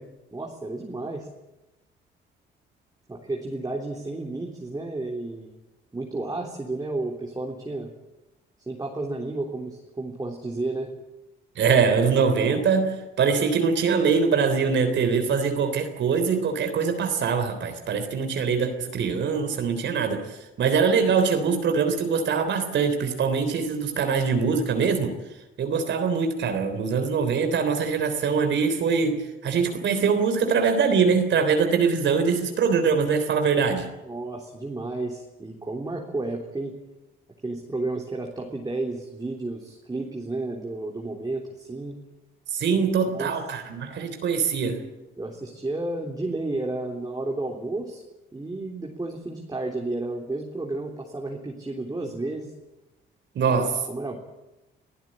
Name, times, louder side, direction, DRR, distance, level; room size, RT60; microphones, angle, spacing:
voice 1, 0.3-1.3 3.1-5.6 5.9-7.9 8.7-10.9 34.0-36.8 37.4-42.0 43.0-43.3 45.2-48.0 48.3-52.5 53.5-54.2, right 2 dB, 20° right, 0 dB, 3.5 m, -32 dB
voice 2, 11.6-25.1 25.6-33.9 42.5-44.8 53.4-53.9, right 5 dB, 65° right, 7 dB, 3.5 m, -23 dB
24.5 x 15.0 x 9.0 m, 1.0 s
cardioid pair, 90°, 20 cm